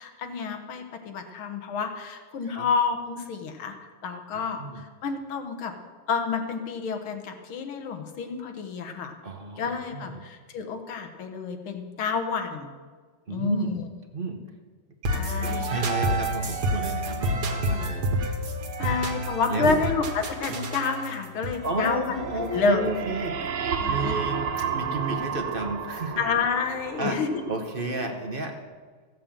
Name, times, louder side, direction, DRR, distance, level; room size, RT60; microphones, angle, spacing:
voice 1, 0.0-5.7 6.1-9.1 9.6-12.7 13.3-13.8 15.1-15.8 18.8-22.9 23.8-24.1 26.2-27.3, left 5 dB, 85° left, 5 dB, 2.1 m, -29 dB
voice 2, 4.3-4.8 9.2-9.7 9.9-10.3 13.3-13.8 14.1-14.4 15.4-18.4 18.8-18.9 19.5-19.8 21.6-26.2 27.0-27.2 27.5-28.6, right 2 dB, 35° right, 4 dB, 0.9 m, -32 dB
sound 1, 15.0-22.9, right 1 dB, 55° right, 1.8 m, -29 dB
sound 2, 22.2-28.1, right 7 dB, 85° right, 1.9 m, -32 dB
15.5 x 7.6 x 7.3 m, 1.5 s
omnidirectional pair, 2.2 m